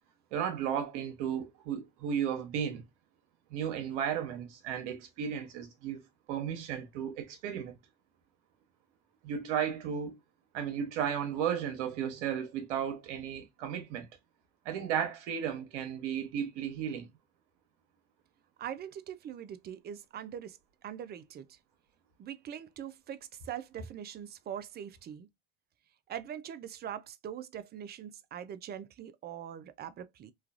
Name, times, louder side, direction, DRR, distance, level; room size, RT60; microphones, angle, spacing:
voice 1, 0.3-2.8 3.5-6.0 6.3-7.8 9.2-10.2 10.5-14.1 14.6-17.1, right 8 dB, 75° right, 1.0 m, -34 dB
voice 2, 18.6-21.6 22.2-25.3 26.1-30.3, right 9 dB, 30° right, 0.4 m, -42 dB
3.1 x 2.3 x 2.4 m
hypercardioid pair, 85°, 36 cm